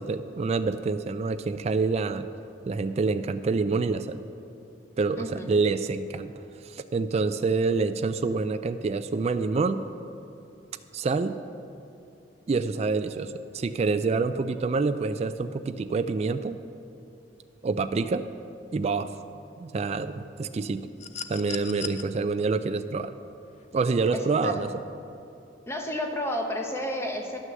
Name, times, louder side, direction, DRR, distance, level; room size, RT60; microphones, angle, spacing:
voice 1, 0.0-2.2 2.7-4.2 5.0-6.3 6.6-9.8 10.9-11.3 12.5-16.6 17.6-18.2 18.7-19.1 19.6-20.8 21.3-23.1 23.7-24.7, right 4 dB, 35° right, 10 dB, 0.3 m, -27 dB
voice 2, 5.2-5.6 24.1-24.7 25.7-27.4, left 1 dB, 15° left, 2 dB, 1.0 m, -31 dB
sound 1, 21.0-22.0 23.5-23.7, left 7 dB, 40° left, 0.5 m, -37 dB
11.0 x 6.3 x 7.5 m, 2.6 s
head